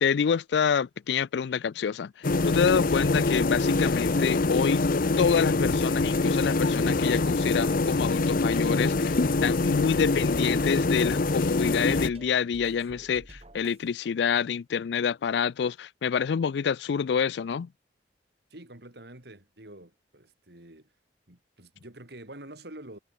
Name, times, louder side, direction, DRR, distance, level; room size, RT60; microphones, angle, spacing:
voice 1, 0.0-2.1 2.4-4.8 5.2-17.7, left 7 dB, 70° left, 0.4 m, -27 dB
sound 1, 2.2-12.1, left 3 dB, 55° left, 0.8 m, -25 dB
sound 2, 6.1-14.1, right 1 dB, 35° right, 3.3 m, -50 dB
voice 2, 18.5-20.9 21.3-23.0, right 1 dB, 65° right, 4.1 m, -47 dB
head